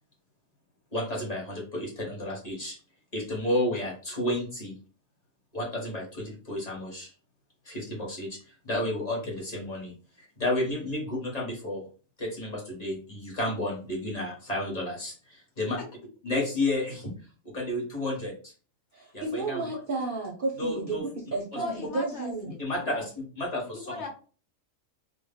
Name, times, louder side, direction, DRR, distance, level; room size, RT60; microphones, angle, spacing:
voice 1, 0.9-2.8 3.1-4.7 5.5-7.1 7.6-11.9 12.2-15.8 16.2-17.1 17.4-18.5 19.1-19.6 20.6-21.0 21.5-21.6 22.6-23.9, left 1 dB, 35° left, -2 dB, 0.9 m, -31 dB
voice 2, 18.9-22.5, right 3 dB, 55° right, -1 dB, 0.6 m, -32 dB
voice 3, 21.5-23.1 23.8-24.1, left 4 dB, 60° left, 2 dB, 0.9 m, -38 dB
2.4 x 2.1 x 3.4 m, 0.37 s
omnidirectional pair, 1.4 m